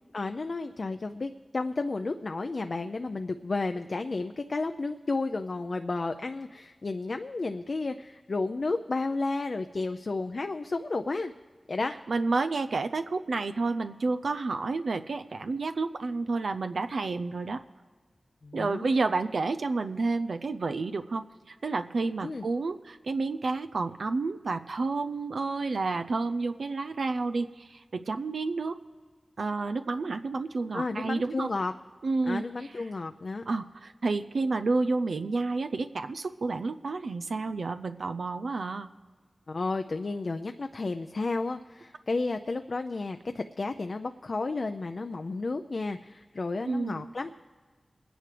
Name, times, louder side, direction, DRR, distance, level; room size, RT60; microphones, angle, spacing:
voice 1, 0.1-11.3 11.7-11.9 18.4-18.9 22.2-22.5 30.7-31.7 32.2-33.4 39.5-47.5, left 3 dB, 60° left, 6 dB, 0.5 m, -32 dB
voice 2, 12.1-17.6 18.5-28.8 29.4-31.5 32.0-32.4 33.5-38.9 46.6-47.0, right 3 dB, 80° right, 8 dB, 0.4 m, -30 dB
22.5 x 10.0 x 3.3 m, 1.5 s
cardioid pair, 45°, 0 cm